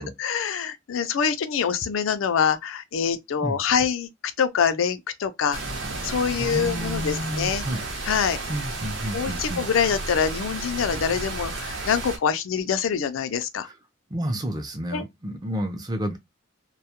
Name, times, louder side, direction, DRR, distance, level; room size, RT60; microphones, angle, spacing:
voice 1, 0.0-4.1 4.4-5.6 6.0-7.7 8.0-8.4 9.1-13.7 14.9-15.0, left 7 dB, 90° left, 0.4 m, -25 dB
sound 1, 5.5-12.2, right 2 dB, 80° right, 0.8 m, -32 dB
voice 2, 6.4-7.8 8.5-9.6 13.6-13.8 14.1-16.2, equal, 20° right, 0.5 m, -30 dB
2.2 x 2.1 x 2.8 m
head